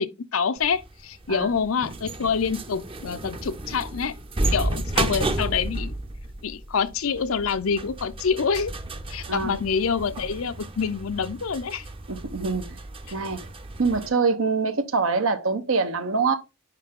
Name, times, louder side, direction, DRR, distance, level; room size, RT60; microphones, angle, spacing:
voice 1, 0.0-4.1 4.5-6.0 6.4-8.7 9.1-11.9, left 6 dB, 85° left, 0.6 m, -26 dB
sound 1, 0.6-14.1, right 2 dB, 25° right, 0.6 m, -32 dB
voice 2, 12.1-12.8 13.1-13.5 13.8-16.4, right 4 dB, 80° right, 1.0 m, -24 dB
9.8 x 3.3 x 3.6 m
head